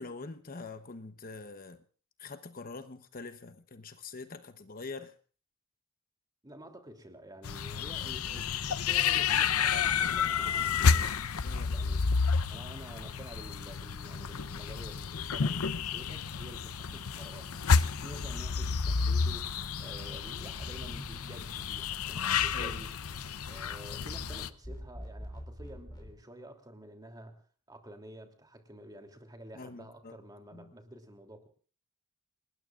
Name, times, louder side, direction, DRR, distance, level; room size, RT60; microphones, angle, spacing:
voice 1, 0.0-1.8 2.2-5.1 11.4-11.8 22.5-22.8 29.5-30.2 30.5-30.7, left 3 dB, 40° left, 1.0 m, -44 dB
voice 2, 6.4-11.1 11.7-22.9 23.5-27.4 27.7-31.5, right 1 dB, 20° right, 3.0 m, -50 dB
sound 1, 7.4-24.5, left 6 dB, 75° left, 0.8 m, -30 dB
sound 2, 19.3-26.1, equal, 20° left, 3.9 m, -47 dB
29.0 x 20.0 x 2.5 m
head